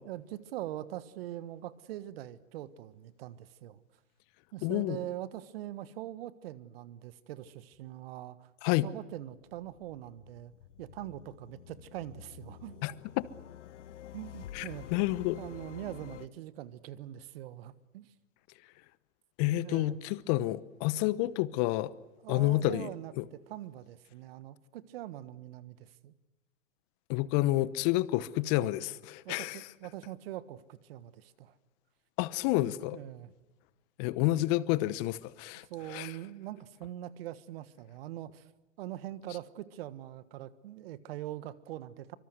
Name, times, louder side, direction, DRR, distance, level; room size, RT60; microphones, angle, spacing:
voice 1, 0.0-3.8 4.5-8.5 8.8-10.5 10.8-12.8 14.1-18.1 19.6-20.0 22.2-26.1 29.2-31.5 32.9-33.3 35.7-38.5 38.8-42.2, right 13 dB, 45° right, 1.5 m, -43 dB
voice 2, 4.6-5.0 8.6-8.9 12.8-12.9 13.2-13.3 14.5-14.6 14.9-15.4 19.4-21.9 22.3-22.9 23.2-23.3 27.1-29.6 32.2-33.0 34.0-36.1, left 17 dB, 30° left, 1.0 m, -29 dB
sound 1, 9.0-16.3, left 11 dB, 60° left, 1.2 m, -49 dB
24.5 x 24.5 x 8.0 m
hypercardioid pair, 130°, 40 cm